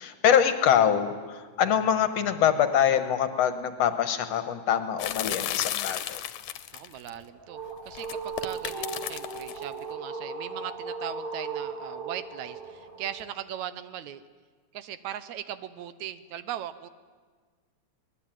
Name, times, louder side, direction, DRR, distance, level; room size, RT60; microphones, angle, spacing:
voice 1, 0.0-6.2, left 9 dB, 65° left, 9 dB, 2.1 m, -24 dB
sound 1, 5.0-7.1 8.0-9.6, left 12 dB, 80° left, 2.3 m, -33 dB
voice 2, 6.7-7.6 7.9-14.2 14.7-16.9, right 10 dB, 75° right, 13 dB, 2.1 m, -39 dB
sound 2, 7.1-13.2, right 4 dB, 20° right, 1.8 m, -37 dB
24.5 x 19.5 x 9.0 m, 1.5 s
omnidirectional pair, 3.5 m